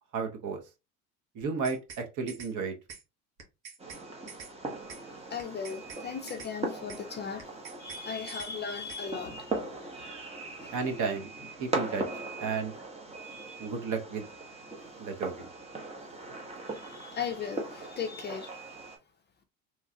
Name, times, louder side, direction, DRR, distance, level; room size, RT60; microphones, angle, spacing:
voice 1, 0.1-0.6 1.3-2.7 10.7-11.3 11.6-12.0 12.4-12.7 13.6-14.3 15.0-15.5, right 5 dB, 45° right, 1.1 m, -32 dB
sound 1, 1.4-2.0 2.3-2.5 2.9-3.0 3.4-4.0 4.3-4.5 4.9-5.0 5.4-6.0 6.3-6.5 6.9-7.0 7.4-8.0 8.3-8.5 8.9-9.0, right 5 dB, 90° right, 1.2 m, -46 dB
Fireworks, 3.8-19.0, right 2 dB, 15° right, 0.9 m, -40 dB
voice 2, 5.3-7.5 7.8-9.5 10.6-10.7 13.2-13.6 16.7-18.5, left 6 dB, 25° left, 0.5 m, -37 dB
3.1 x 2.3 x 2.8 m
hypercardioid pair, 85°, 41 cm